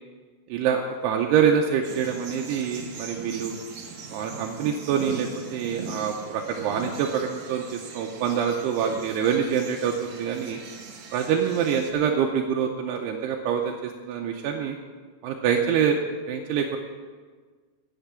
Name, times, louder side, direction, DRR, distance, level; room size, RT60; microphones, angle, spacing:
voice 1, 0.5-3.5 4.1-10.6 11.1-14.8 15.2-16.0 16.3-16.8, right 7 dB, 85° right, 1 dB, 2.8 m, -25 dB
sound 1, 1.8-11.9, right 4 dB, 55° right, 2.1 m, -40 dB
10.5 x 8.2 x 8.7 m, 1.5 s
omnidirectional pair, 4.8 m